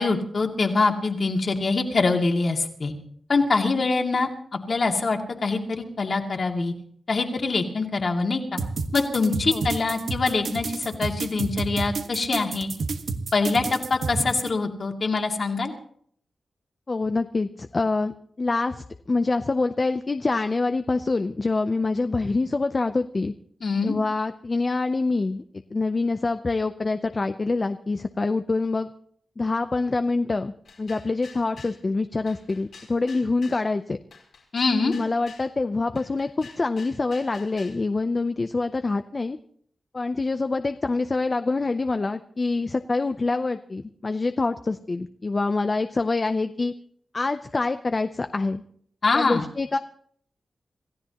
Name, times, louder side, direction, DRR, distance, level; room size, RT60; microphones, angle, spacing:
voice 1, 0.0-2.9 3.3-4.3 4.7-6.7 7.1-8.6 8.9-12.7 13.3-15.7 23.6-23.9 34.5-35.0 49.0-49.4, left 3 dB, 50° left, 2 dB, 2.2 m, -24 dB
sound 1, 8.6-14.5, right 4 dB, 75° right, 1.3 m, -30 dB
voice 2, 16.9-23.3 23.8-25.4 25.7-28.9 29.4-30.5 30.8-34.0 34.8-39.4 39.9-46.7 47.1-48.6 49.1-49.8, left 3 dB, 35° left, 8 dB, 0.6 m, -25 dB
sound 2, 30.6-31.8 32.3-33.6 34.1-35.5 35.9-37.8, left 5 dB, 90° left, 4.6 m, -47 dB
27.5 x 15.0 x 2.9 m, 0.62 s
wide cardioid pair, 110°, 0 cm